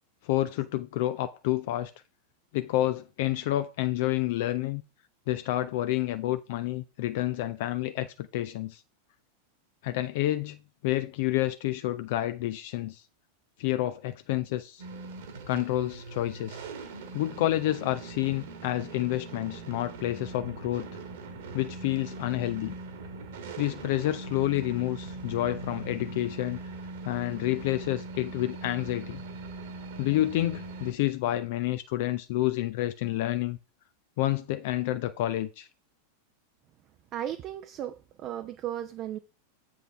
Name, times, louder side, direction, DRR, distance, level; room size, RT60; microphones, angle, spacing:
voice 1, 0.2-1.9 2.5-4.8 5.3-8.8 9.8-10.6 10.8-13.0 13.6-14.8 15.5-16.7 17.1-20.9 21.5-22.7 23.6-26.6 27.0-29.2 30.0-33.6 34.2-35.7, left 15 dB, 50° left, 0.4 m, -29 dB
sound 1, 14.8-30.9, right 3 dB, 55° right, 1.6 m, -41 dB
voice 2, 37.1-39.2, right 11 dB, 35° right, 0.5 m, -35 dB
7.9 x 6.2 x 3.4 m
figure-of-eight pair, 90°, 0 cm